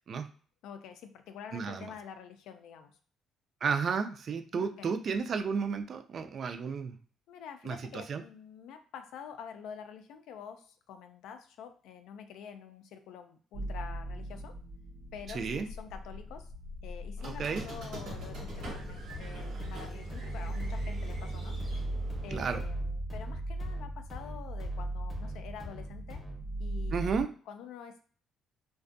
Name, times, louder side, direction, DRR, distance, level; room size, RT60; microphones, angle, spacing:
voice 1, 0.6-3.0 4.6-5.0 7.3-14.5 15.1-16.5 16.8-21.8 22.2-26.2 26.6-28.0, left 7 dB, 85° left, 8 dB, 0.3 m, -47 dB
voice 2, 1.5-1.9 3.6-7.0 7.6-8.2 15.3-15.7 17.2-17.6 22.3-22.6 26.9-27.3, right 5 dB, 45° right, 7 dB, 0.3 m, -32 dB
sound 1, 13.5-27.2, right 1 dB, 65° right, 0.7 m, -38 dB
Squeak, 17.2-22.5, right 2 dB, 85° right, 1.1 m, -46 dB
sound 2, 18.1-26.6, left 3 dB, 25° left, 0.7 m, -47 dB
2.5 x 2.2 x 2.5 m, 0.43 s
cardioid pair, 110°, 0 cm